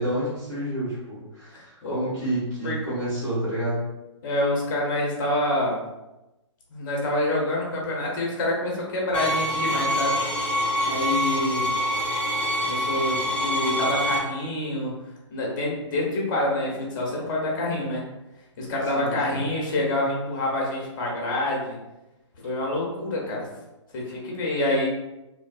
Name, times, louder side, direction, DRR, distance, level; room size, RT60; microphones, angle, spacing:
voice 1, 0.0-3.8 18.9-19.4, right 1 dB, 15° right, -10 dB, 1.5 m, -29 dB
voice 2, 1.5-2.1 2.6-2.9 4.2-5.8 6.7-10.2 10.9-11.7 12.6-14.9 15.3-18.0 18.6-21.8 22.4-23.5 23.9-24.9, left 1 dB, 40° left, -2 dB, 1.1 m, -27 dB
sound 1, 9.1-14.2, equal, 5° left, 0.3 m, -25 dB
3.0 x 2.8 x 2.5 m, 0.98 s
hypercardioid pair, 140°, 16 cm